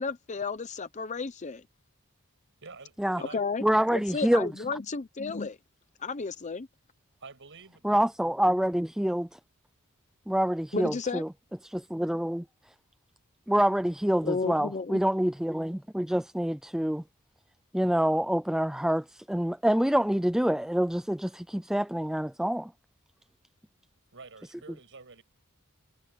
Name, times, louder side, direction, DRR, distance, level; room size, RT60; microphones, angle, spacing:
voice 1, 0.0-1.6 3.3-3.6 3.9-5.6 6.0-6.7 10.7-11.2 14.2-15.0, left 4 dB, 35° left, 0.6 m, -32 dB
voice 2, 2.6-3.4 7.2-8.0 24.1-25.2, right 4 dB, 60° right, 6.4 m, -48 dB
voice 3, 3.6-4.5 7.8-9.4 10.3-11.3 11.6-12.4 13.5-17.0 17.7-22.7, equal, 5° right, 0.4 m, -26 dB
head